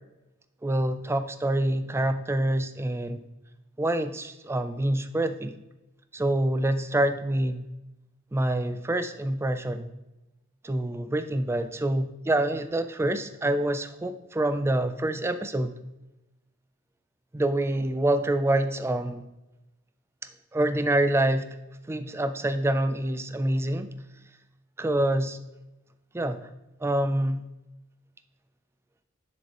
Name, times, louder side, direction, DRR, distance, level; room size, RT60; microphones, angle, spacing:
voice 1, 0.6-3.2 3.8-5.6 6.1-7.6 8.3-9.9 10.6-15.7 17.3-19.2 20.5-21.5 21.9-23.9 24.8-25.4 26.1-26.5 26.8-27.5, right 1 dB, 10° right, 10 dB, 0.3 m, -26 dB
7.5 x 6.6 x 2.9 m, 0.99 s
head